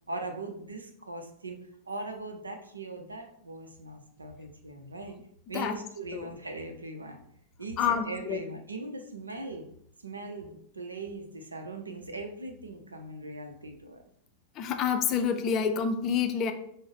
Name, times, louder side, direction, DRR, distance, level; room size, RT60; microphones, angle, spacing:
voice 1, 0.1-1.6 1.9-5.2 5.5-7.2 7.6-9.7 10.0-14.0, right 2 dB, 80° right, 5 dB, 0.5 m, -40 dB
voice 2, 7.8-8.4 14.6-16.5, left 7 dB, 35° left, 7 dB, 0.4 m, -28 dB
5.1 x 2.0 x 3.4 m, 0.69 s
figure-of-eight pair, 90°, 0 cm